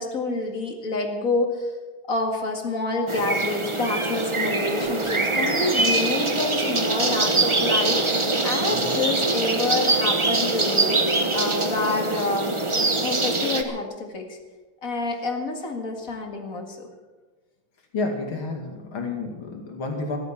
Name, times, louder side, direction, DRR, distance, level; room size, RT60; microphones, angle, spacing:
voice 1, 0.0-1.7 2.1-11.0 11.3-12.6 13.0-14.4 14.8-16.9, left 3 dB, 40° left, 3 dB, 2.4 m, -28 dB
sound 1, 3.1-13.6, right 2 dB, 25° right, 0.7 m, -23 dB
voice 2, 17.9-20.2, left 3 dB, 75° left, 2 dB, 3.1 m, -30 dB
14.0 x 12.0 x 7.4 m, 1.3 s
omnidirectional pair, 2.3 m